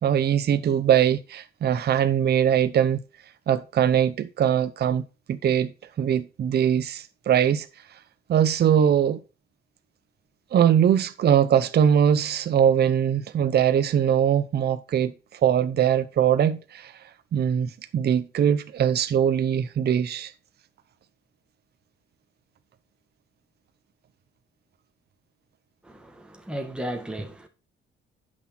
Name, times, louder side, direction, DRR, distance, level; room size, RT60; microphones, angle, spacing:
voice 1, 0.0-3.0 3.5-7.7 8.3-9.2 10.5-16.9 17.3-20.3, right 9 dB, 55° right, 0.8 m, -22 dB
voice 2, 25.8-27.5, right 1 dB, 5° right, 1.9 m, -34 dB
9.8 x 6.3 x 4.2 m
cardioid pair, 90°, 20 cm